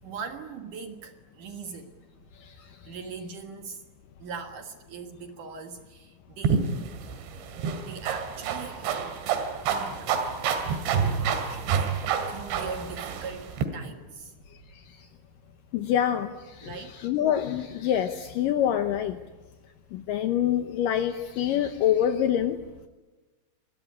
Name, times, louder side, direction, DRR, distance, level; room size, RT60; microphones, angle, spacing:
voice 1, 0.0-2.0 2.6-3.8 4.2-6.7 7.8-9.2 9.7-10.2 10.8-14.3 16.6-17.0, right 5 dB, 60° right, 5 dB, 2.6 m, -41 dB
sound 1, 6.4-13.7, right 6 dB, 80° right, 4.6 m, -28 dB
voice 2, 15.7-19.2 19.9-22.6, left 10 dB, 75° left, 7 dB, 2.0 m, -26 dB
27.5 x 21.0 x 9.9 m, 1.2 s
omnidirectional pair, 5.1 m